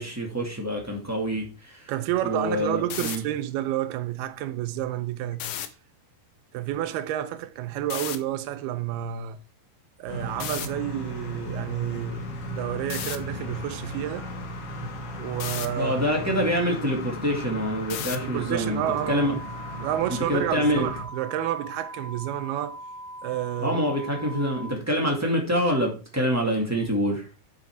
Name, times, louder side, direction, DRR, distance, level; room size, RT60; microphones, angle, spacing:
voice 1, 0.0-1.9 2.2-3.2 15.8-19.4 20.3-20.9 23.6-27.2, equal, 10° right, 1.1 m, -26 dB
voice 2, 1.9-5.5 6.5-9.4 10.0-14.3 15.2-16.2 18.2-19.4 19.8-22.8 23.2-23.8, right 12 dB, 85° right, 2.7 m, -30 dB
sound 1, 2.8-3.2 5.3-5.7 7.9-8.2 10.4-10.7 12.9-13.2 15.4-15.7 17.9-18.3, left 10 dB, 85° left, 1.6 m, -32 dB
sound 2, 10.1-21.0, left 1 dB, 60° left, 3.1 m, -36 dB
sound 3, 18.8-24.8, equal, 65° right, 2.8 m, -40 dB
7.9 x 6.5 x 4.7 m
omnidirectional pair, 4.5 m